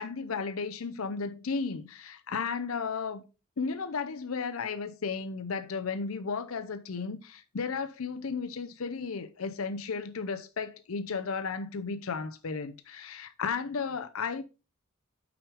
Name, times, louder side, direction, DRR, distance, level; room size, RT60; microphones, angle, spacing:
voice 1, 0.0-3.2 3.6-14.4, left 5 dB, 85° left, 0.6 m, -34 dB
6.0 x 5.1 x 4.8 m
head